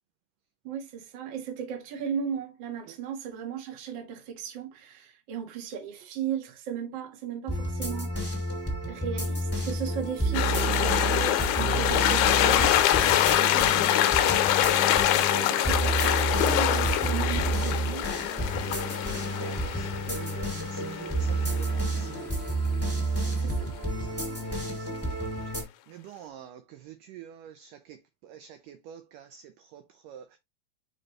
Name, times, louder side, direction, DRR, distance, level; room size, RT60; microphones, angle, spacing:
voice 1, 0.6-8.1 8.9-15.0 15.5-18.1 20.1-20.3 23.4-23.7, right 8 dB, 50° right, 1.4 m, -36 dB
sound 1, 7.5-25.6, right 2 dB, 5° right, 1.7 m, -30 dB
sound 2, 10.3-21.8, left 13 dB, 90° left, 2.7 m, -25 dB
voice 2, 19.4-22.1 23.3-23.4 24.1-24.4 24.8-25.2 25.9-28.0 28.2-29.4 29.7-30.2, right 10 dB, 80° right, 1.9 m, -47 dB
6.1 x 5.1 x 3.2 m
omnidirectional pair, 4.6 m